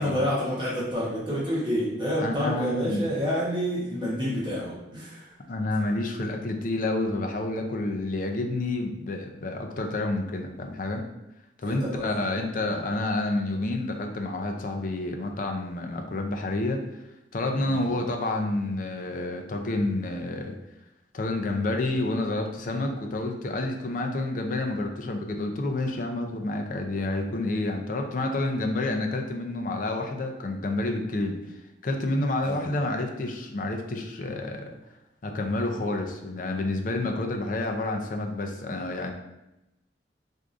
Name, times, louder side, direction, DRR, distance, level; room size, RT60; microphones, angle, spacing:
voice 1, 0.0-5.3 11.6-12.2 17.6-17.8 32.4-32.6, equal, 25° right, -8 dB, 0.8 m, -28 dB
voice 2, 2.2-3.1 5.5-11.0 11.6-17.0 17.3-20.6 21.1-31.4 31.8-34.7 35.2-39.1, left 2 dB, 45° left, 3 dB, 0.4 m, -29 dB
4.6 x 2.6 x 2.5 m, 0.92 s
head